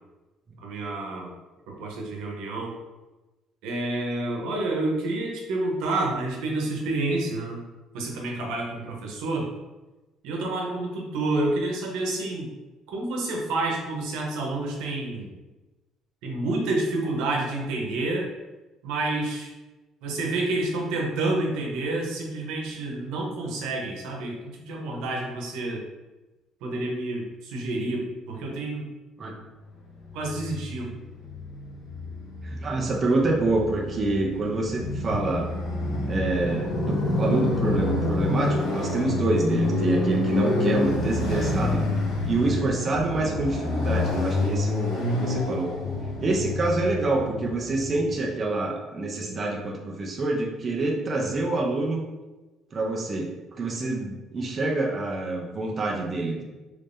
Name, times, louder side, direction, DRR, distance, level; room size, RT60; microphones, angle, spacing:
voice 1, 0.6-1.3 1.7-2.7 3.6-7.6 7.9-9.5 10.2-12.5 12.9-15.3 16.2-18.3 18.8-19.5 20.0-25.8 26.6-28.9 30.1-30.9, right 2 dB, 85° right, 0 dB, 0.8 m, -29 dB
Motorcycle, 30.0-48.2, left 2 dB, 60° left, 0.7 m, -28 dB
voice 2, 32.4-35.5 36.1-41.8 42.3-45.7 46.2-52.0 52.7-53.3 53.6-56.4, right 2 dB, 25° right, -1 dB, 0.4 m, -27 dB
3.1 x 2.6 x 3.5 m, 1.1 s
cardioid pair, 175°, 0 cm